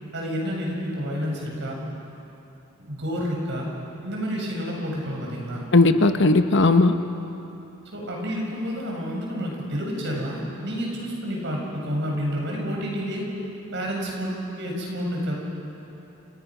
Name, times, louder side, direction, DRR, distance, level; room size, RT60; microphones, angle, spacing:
voice 1, 0.1-1.8 2.8-3.7 4.0-5.6 7.9-13.3 13.7-14.3 14.6-15.3, equal, 55° right, -1 dB, 6.9 m, -29 dB
voice 2, 5.7-7.0, left 3 dB, 55° left, 8 dB, 1.1 m, -17 dB
30.0 x 29.5 x 6.2 m, 2.9 s
head